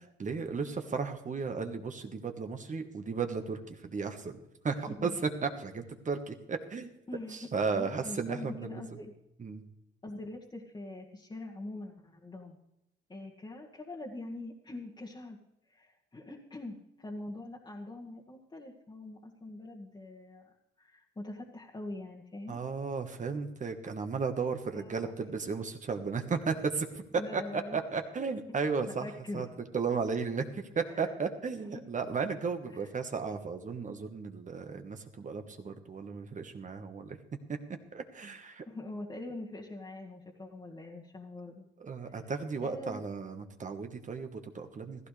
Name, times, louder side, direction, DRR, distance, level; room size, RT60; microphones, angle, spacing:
voice 1, 0.2-6.9 7.3-8.8 9.4-9.6 22.5-27.0 27.3-29.1 29.3-29.5 29.7-37.2 37.9-38.6 41.8-45.1, right 5 dB, 40° right, 6 dB, 1.4 m, -35 dB
voice 2, 4.8-5.2 7.1-7.5 7.7-9.1 10.0-12.6 13.1-15.4 15.7-22.6 24.7-25.1 27.1-27.8 28.5-28.6 28.9-29.5 30.8-31.2 31.7-31.9 32.8-32.9 38.6-41.7 42.1-42.3 42.6-43.0, left 2 dB, 20° left, -3 dB, 1.8 m, -43 dB
15.0 x 14.5 x 3.3 m, 0.87 s
cardioid pair, 90°, 20 cm